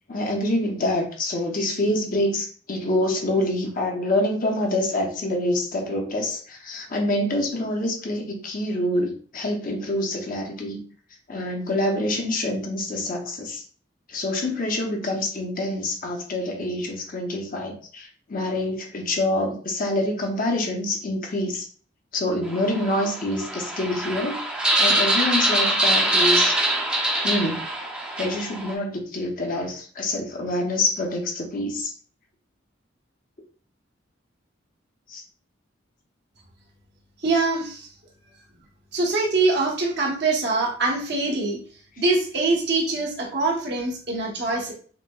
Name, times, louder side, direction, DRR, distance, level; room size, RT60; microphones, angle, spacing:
voice 1, 0.1-10.8 11.3-13.6 14.1-21.7 22.1-24.4 24.8-26.5 27.2-27.7 28.2-31.9 35.1-35.2, left 1 dB, 45° left, 2 dB, 0.7 m, -26 dB
sound 1, 22.5-28.7, right 1 dB, 5° right, 0.6 m, -23 dB
voice 2, 37.2-37.9 38.9-41.6 42.0-44.7, right 3 dB, 60° right, -1 dB, 1.1 m, -23 dB
5.8 x 2.1 x 2.3 m, 0.43 s
head